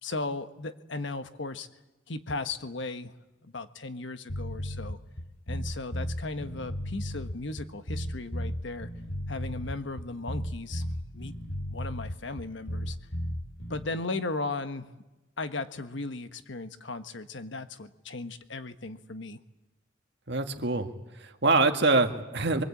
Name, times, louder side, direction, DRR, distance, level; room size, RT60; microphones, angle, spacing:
voice 1, 0.0-1.7 2.1-3.1 3.4-5.0 5.5-8.9 9.3-10.8 11.1-11.3 11.7-13.0 13.7-14.9 15.4-19.4, left 3 dB, 65° left, 10 dB, 1.3 m, -36 dB
sound 1, 4.3-13.9, equal, 85° left, 2.8 m, -35 dB
voice 2, 20.3-22.6, right 3 dB, 60° right, 6 dB, 1.9 m, -25 dB
24.0 x 24.0 x 8.5 m, 1.0 s
head